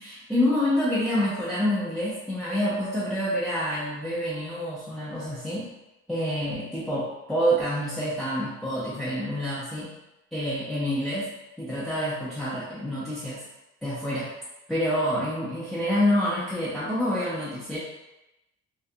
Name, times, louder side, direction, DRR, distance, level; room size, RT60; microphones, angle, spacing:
voice 1, 0.0-5.7 6.1-9.9 10.3-11.3 11.6-13.4 13.8-14.3 14.7-17.8, equal, ahead, -10 dB, 0.6 m, -27 dB
2.6 x 2.3 x 2.5 m, 0.95 s
cardioid pair, 90°, 30 cm